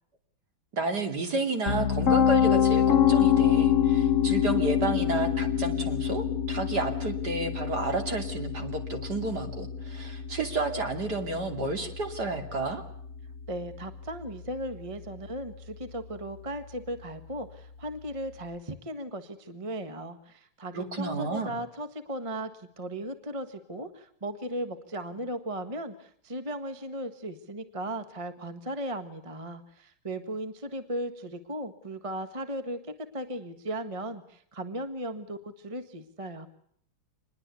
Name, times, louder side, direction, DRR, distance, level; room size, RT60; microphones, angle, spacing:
voice 1, 0.7-12.8 20.7-21.5, right 3 dB, 50° right, 6 dB, 3.4 m, -31 dB
Piano, 1.7-13.6, left 9 dB, 40° left, 2.1 m, -26 dB
voice 2, 13.5-36.5, right 1 dB, 20° right, 10 dB, 1.4 m, -37 dB
26.0 x 21.0 x 8.4 m, 0.65 s
omnidirectional pair, 2.2 m